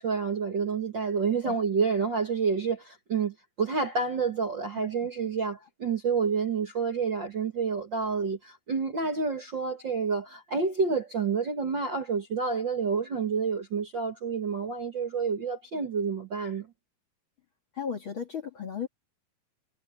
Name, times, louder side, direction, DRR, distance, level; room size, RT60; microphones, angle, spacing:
voice 1, 0.0-16.7, right 5 dB, 40° right, 1.9 m, -29 dB
voice 2, 17.7-18.9, left 7 dB, 40° left, 2.2 m, -35 dB
omnidirectional pair, 4.2 m